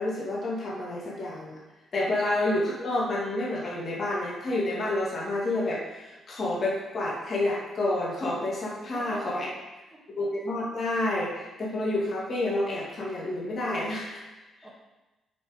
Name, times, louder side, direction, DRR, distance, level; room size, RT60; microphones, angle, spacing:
voice 1, 0.0-1.6 1.9-9.5 10.2-14.2, left 1 dB, 35° left, -5 dB, 2.3 m, -29 dB
voice 2, 8.8-10.0 14.4-14.7, right 1 dB, 5° left, -4 dB, 1.7 m, -45 dB
8.3 x 6.0 x 5.2 m, 1.1 s
cardioid pair, 165°, 0 cm